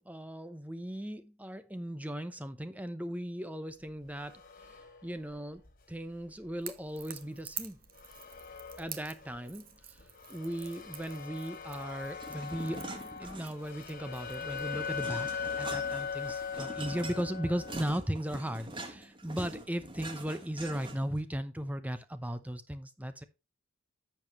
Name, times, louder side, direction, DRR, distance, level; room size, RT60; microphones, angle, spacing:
voice 1, 0.0-7.8 8.8-10.0 10.3-12.9 13.2-23.2, equal, 5° right, 0.7 m, -37 dB
sound 1, 3.9-5.7 6.1-6.3 7.0-7.2 7.5-7.6 7.9-9.5 10.0-17.8, left 6 dB, 40° left, 2.1 m, -40 dB
Crackle / Crack, 6.6-14.7, right 10 dB, 45° right, 1.1 m, -49 dB
sound 2, 12.1-13.8 14.2-21.2, right 2 dB, 25° right, 1.4 m, -44 dB
11.0 x 7.0 x 3.1 m
head